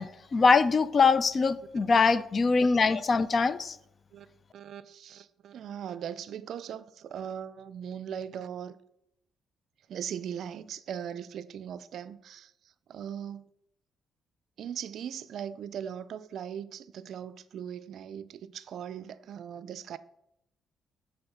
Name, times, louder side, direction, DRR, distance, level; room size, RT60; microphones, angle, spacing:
voice 1, 0.0-3.8, left 4 dB, 40° left, 0.4 m, -23 dB
voice 2, 4.5-8.8 9.9-12.5 12.9-13.5 14.6-20.0, right 8 dB, 70° right, 0.4 m, -39 dB
7.7 x 3.5 x 5.9 m
cardioid pair, 90°, 0 cm